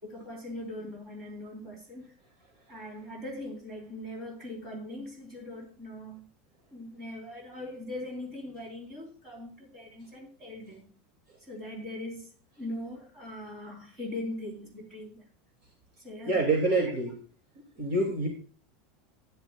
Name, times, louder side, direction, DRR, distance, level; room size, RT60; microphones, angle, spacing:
voice 1, 0.0-2.1 2.7-6.3 6.7-10.9 11.4-12.3 12.6-15.2 16.0-16.4 16.8-16.9, left 1 dB, 20° right, 3.6 m, -40 dB
voice 2, 16.3-17.1 17.8-18.3, right 2 dB, 45° right, 2.5 m, -26 dB
13.5 x 10.0 x 2.3 m
supercardioid pair, 175°, 0 cm